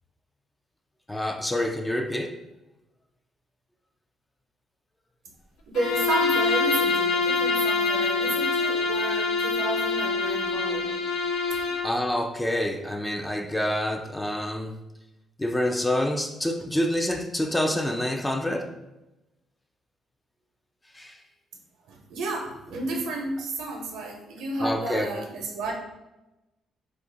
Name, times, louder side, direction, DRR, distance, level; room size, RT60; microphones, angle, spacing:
voice 1, 1.1-2.3 11.8-14.8 15.4-18.7 20.9-21.2 24.6-25.1, left 1 dB, 10° left, 5 dB, 0.4 m, -27 dB
Bowed string instrument, 5.7-11.9, left 3 dB, 75° left, 0.4 m, -25 dB
voice 2, 5.7-10.9 21.9-25.7, right 2 dB, 80° right, 1 dB, 0.7 m, -32 dB
2.6 x 2.4 x 3.8 m, 0.96 s
cardioid pair, 90°, 0 cm